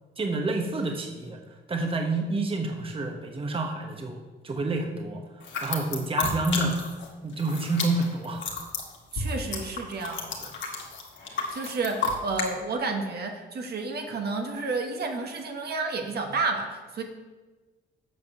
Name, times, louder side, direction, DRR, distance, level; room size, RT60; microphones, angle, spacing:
voice 1, 0.2-1.4 1.7-6.8 7.2-8.4, right 2 dB, 25° right, 3 dB, 1.1 m, -29 dB
sound 1, 5.4-7.1 7.3-12.5, left 4 dB, 70° left, 1.8 m, -32 dB
voice 2, 9.1-10.5 11.2-17.0, right 3 dB, 55° right, 3 dB, 1.3 m, -31 dB
7.8 x 5.2 x 6.8 m, 1.3 s
cardioid pair, 90°, 20 cm